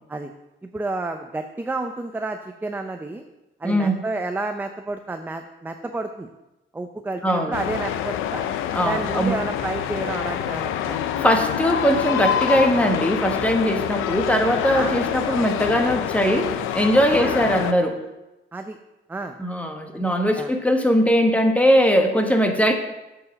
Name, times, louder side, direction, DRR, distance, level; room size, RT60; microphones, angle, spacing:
voice 1, 0.6-3.2 3.6-6.3 6.7-8.4 8.9-11.0 14.7-15.0 17.1-17.4 18.5-18.8 19.1-19.3 20.4-20.5, right 2 dB, 10° right, 6 dB, 0.5 m, -30 dB
voice 2, 3.6-4.0 7.2-7.6 8.7-9.3 11.2-18.0 19.4-22.7, equal, 5° left, 4 dB, 1.3 m, -20 dB
sound 1, 7.5-17.7, left 10 dB, 90° left, 0.6 m, -26 dB
8.1 x 4.9 x 7.0 m, 0.98 s
cardioid pair, 90°, 20 cm